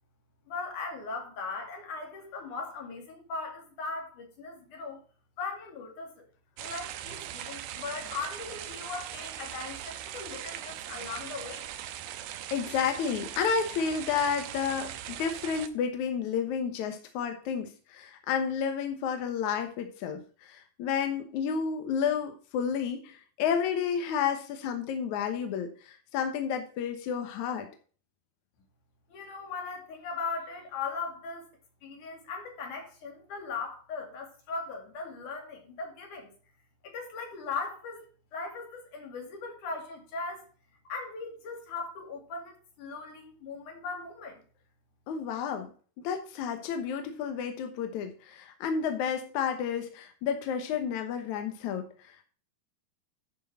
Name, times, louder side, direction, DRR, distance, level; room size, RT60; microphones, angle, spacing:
voice 1, 0.5-5.0 5.4-6.3 6.6-11.7 29.1-31.4 31.8-36.3 36.8-40.4 40.9-44.4, left 4 dB, 50° left, 3.7 m, -39 dB
sound 1, 6.6-15.7, right 11 dB, 80° right, 2.7 m, -40 dB
voice 2, 12.5-27.7 45.1-45.7 46.0-52.2, left 7 dB, 70° left, 1.8 m, -31 dB
11.0 x 6.5 x 4.2 m
omnidirectional pair, 4.8 m